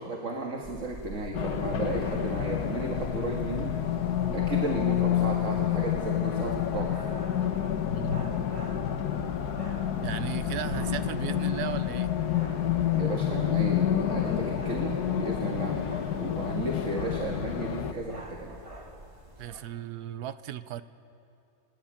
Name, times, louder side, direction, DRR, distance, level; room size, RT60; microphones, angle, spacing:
voice 1, 0.0-4.0 4.3-7.0 12.9-18.6, right 2 dB, 55° right, 1 dB, 2.1 m, -34 dB
sound 1, 0.6-19.6, right 1 dB, 20° right, 1.9 m, -45 dB
Race car auto racing, 1.3-17.9, left 10 dB, 90° left, 1.6 m, -29 dB
voice 2, 7.9-8.3 10.0-12.1 19.4-20.8, right 11 dB, 90° right, 13 dB, 1.3 m, -36 dB
23.5 x 19.5 x 8.9 m, 2.7 s
omnidirectional pair, 1.6 m